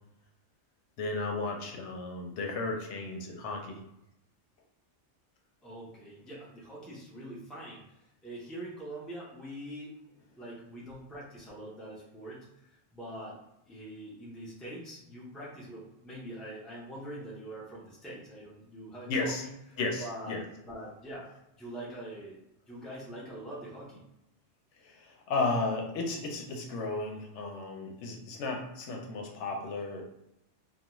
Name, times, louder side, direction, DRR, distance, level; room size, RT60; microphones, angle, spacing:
voice 1, 1.0-3.8 19.1-19.4 19.8-20.4 24.8-30.0, left 3 dB, 80° left, 1 dB, 0.9 m, -34 dB
voice 2, 5.6-10.0 10.4-13.4 13.7-19.5 20.0-21.3 21.6-24.0, right 1 dB, ahead, -5 dB, 0.4 m, -44 dB
2.4 x 2.2 x 2.9 m, 0.84 s
omnidirectional pair, 1.2 m